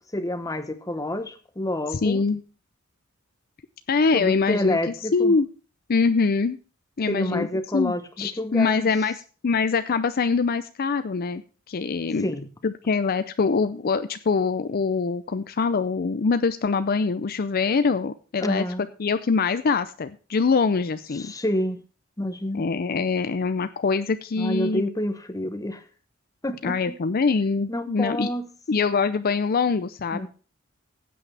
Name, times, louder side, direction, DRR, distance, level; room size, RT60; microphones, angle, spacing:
voice 1, 0.1-2.2 4.1-5.4 7.1-8.9 12.2-12.5 18.4-18.9 21.1-21.8 22.2-22.7 24.4-25.8 26.4-27.0 27.7-28.5 30.1-30.3, left 1 dB, 15° left, 10 dB, 1.0 m, -28 dB
voice 2, 2.0-2.4 3.9-4.8 5.1-5.5 5.9-6.6 7.0-7.5 7.7-9.2 9.4-11.4 11.7-12.3 12.6-18.6 19.0-21.3 22.5-24.8 26.6-28.3 28.7-30.3, left 4 dB, 45° left, 11 dB, 0.5 m, -23 dB
15.5 x 8.6 x 3.4 m, 0.36 s
head